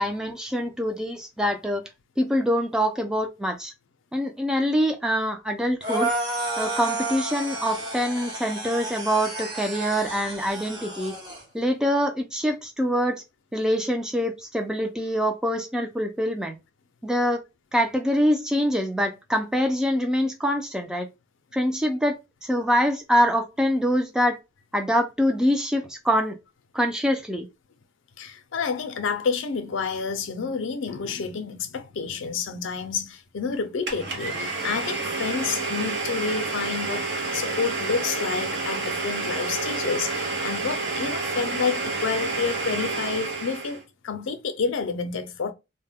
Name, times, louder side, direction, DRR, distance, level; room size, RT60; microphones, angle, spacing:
voice 1, 0.0-1.8 2.2-3.7 4.1-6.1 6.6-11.1 11.5-13.2 13.5-16.6 17.0-17.4 17.7-21.1 21.5-22.2 22.4-24.4 24.7-26.4 26.7-27.5, equal, 5° right, 0.3 m, -24 dB
sound 1, 5.8-11.4, right 2 dB, 20° right, 0.9 m, -31 dB
voice 2, 28.2-45.5, left 5 dB, 75° left, 0.4 m, -29 dB
Domestic sounds home sounds, 33.9-43.8, right 3 dB, 55° right, 0.7 m, -29 dB
2.2 x 2.1 x 3.4 m
head